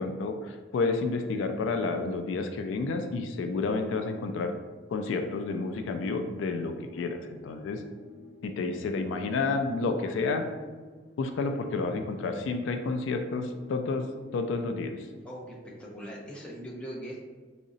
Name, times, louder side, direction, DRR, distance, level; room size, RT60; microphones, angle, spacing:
voice 1, 0.0-4.5 4.9-7.8 8.4-10.4 11.2-14.1 14.3-14.9, left 3 dB, 75° left, 6 dB, 0.3 m, -30 dB
sound 1, 6.6-15.2, left 2 dB, 60° right, 1.1 m, -52 dB
voice 2, 15.2-17.2, equal, 5° left, -4 dB, 0.6 m, -41 dB
3.7 x 2.0 x 3.9 m, 1.4 s
head